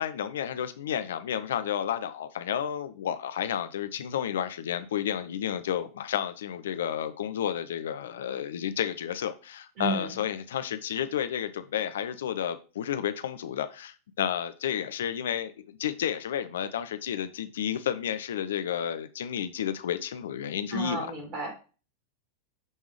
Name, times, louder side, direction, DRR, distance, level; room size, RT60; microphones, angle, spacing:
voice 1, 0.0-21.1, left 9 dB, 60° left, 11 dB, 0.5 m, -31 dB
voice 2, 9.8-10.1 20.7-21.7, right 3 dB, 40° right, 0 dB, 3.6 m, -32 dB
10.5 x 3.6 x 3.2 m, 0.34 s
figure-of-eight pair, 90°, 0 cm